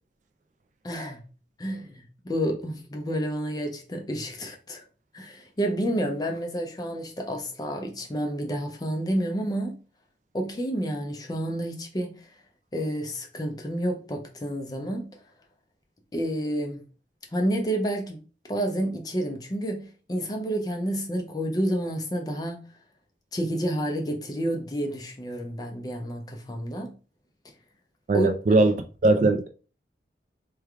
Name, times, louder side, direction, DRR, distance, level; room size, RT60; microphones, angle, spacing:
voice 1, 0.8-1.2 1.6-4.8 5.1-9.8 10.3-12.3 12.7-15.2 16.1-16.8 17.3-18.2 18.5-22.6 23.3-27.0 28.1-28.3, right 1 dB, 20° left, 0.5 m, -29 dB
voice 2, 28.1-28.7 29.0-29.5, right 2 dB, 40° right, 0.3 m, -20 dB
3.2 x 2.2 x 3.4 m
head